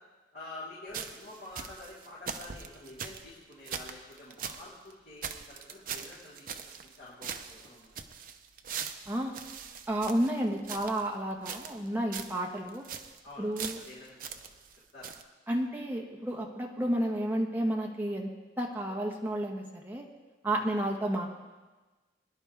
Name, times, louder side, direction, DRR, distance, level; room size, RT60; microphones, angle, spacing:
voice 1, 0.3-7.9 13.2-13.5 13.8-14.5 14.9-15.1 20.5-20.7, left 2 dB, 55° left, -10 dB, 4.0 m, -48 dB
sound 1, 0.9-4.7 4.9-5.0 5.2-7.0 7.2-11.1 11.4-11.9 12.1-12.4 12.7-13.2 13.6-14.8 15.0-15.2, right 7 dB, 45° right, 0.7 m, -41 dB
voice 2, 9.9-12.8 13.4-13.8 15.5-18.3 18.6-20.0 20.4-21.3, right 1 dB, 10° right, 0 dB, 1.4 m, -31 dB
23.0 x 10.5 x 3.6 m, 1.2 s
head